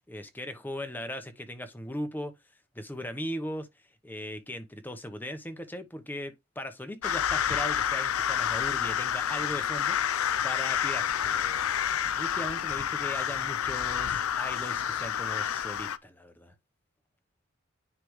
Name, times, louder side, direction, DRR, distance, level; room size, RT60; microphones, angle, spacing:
voice 1, 0.1-2.3 2.7-3.7 4.0-11.7 12.2-16.5, equal, 10° left, 0.9 m, -38 dB
sound 1, 7.0-16.0, left 9 dB, 90° left, 0.5 m, -29 dB
9.8 x 3.4 x 3.1 m
head